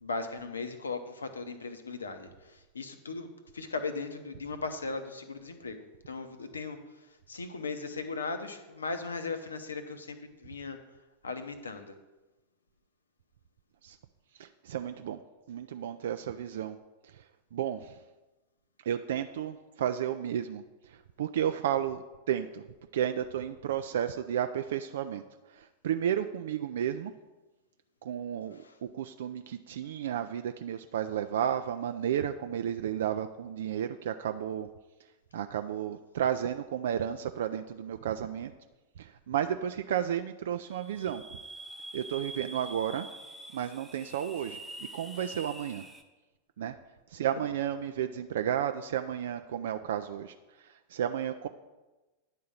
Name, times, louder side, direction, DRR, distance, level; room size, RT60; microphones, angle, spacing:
voice 1, 0.0-3.3 3.5-6.8 7.3-10.8 11.2-12.0, left 4 dB, 75° left, 9 dB, 0.7 m, -37 dB
voice 2, 14.3-15.2 15.5-16.8 17.0-17.2 17.5-18.0 18.8-22.7 22.9-25.2 25.5-27.1 28.0-28.6 28.9-34.7 35.3-38.5 39.0-41.4 41.9-43.1 43.5-45.8 46.6-46.8 47.1-51.5, right 9 dB, 60° right, 8 dB, 0.3 m, -32 dB
sound 1, 40.7-46.0, right 1 dB, ahead, 0.8 m, -45 dB
9.8 x 3.7 x 7.0 m, 1.1 s
figure-of-eight pair, 90°, 0 cm